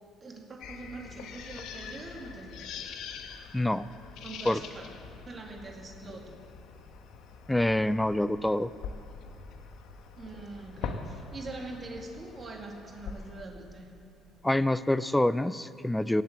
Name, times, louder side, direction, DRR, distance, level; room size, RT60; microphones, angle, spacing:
voice 1, 0.2-2.7 4.2-4.9 5.3-6.3 10.2-13.9, right 3 dB, 35° right, 1 dB, 2.1 m, -43 dB
sound 1, 0.6-13.5, left 6 dB, 80° left, 1.1 m, -44 dB
voice 2, 3.5-3.9 4.5-4.6 7.5-8.7 14.4-16.2, left 1 dB, 5° left, 15 dB, 0.3 m, -26 dB
17.0 x 7.6 x 8.0 m, 2.7 s
cardioid pair, 110°, 0 cm